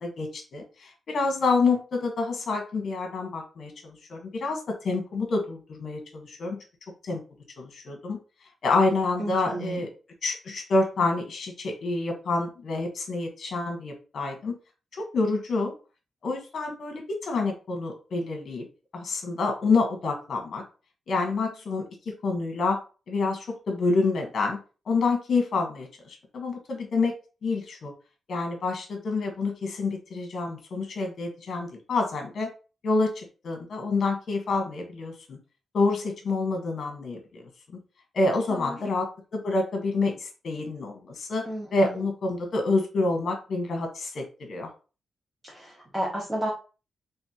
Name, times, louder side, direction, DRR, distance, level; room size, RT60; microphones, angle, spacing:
voice 1, 0.0-6.6 7.0-7.2 7.6-8.2 8.6-9.9 10.2-14.6 14.9-15.7 16.2-18.6 18.9-20.6 21.1-22.8 23.1-24.6 24.9-27.1 27.4-27.9 28.3-32.5 32.8-35.4 35.7-37.4 38.1-41.4 41.7-44.7, left 3 dB, 50° left, 3 dB, 1.4 m, -27 dB
voice 2, 9.2-9.8 38.5-38.9 41.4-42.0 45.4-46.5, right 1 dB, 15° right, -3 dB, 0.9 m, -33 dB
4.2 x 3.5 x 2.9 m, 0.34 s
wide cardioid pair, 170°, 0 cm